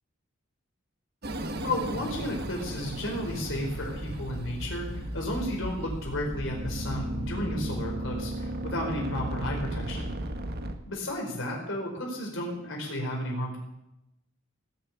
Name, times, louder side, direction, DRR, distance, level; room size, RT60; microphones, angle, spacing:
sound 1, 1.2-10.7, right 1 dB, 45° right, 1.6 m, -35 dB
voice 1, 1.6-10.1 10.9-13.6, left 1 dB, 60° left, 0 dB, 4.3 m, -33 dB
18.5 x 7.6 x 9.6 m, 0.86 s
head